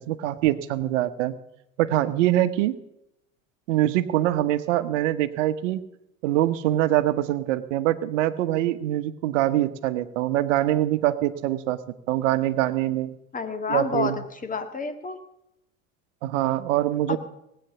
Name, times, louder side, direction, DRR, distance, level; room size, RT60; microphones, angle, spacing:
voice 1, 0.0-1.3 1.8-2.8 3.7-5.8 6.2-11.8 12.1-13.1 13.7-14.2 16.2-17.2, right 14 dB, 65° right, 12 dB, 1.1 m, -24 dB
voice 2, 13.3-14.1 14.4-15.2 17.1-17.2, left 4 dB, 20° left, 8 dB, 1.8 m, -28 dB
18.5 x 9.0 x 6.8 m, 0.83 s
hypercardioid pair, 80°, 40 cm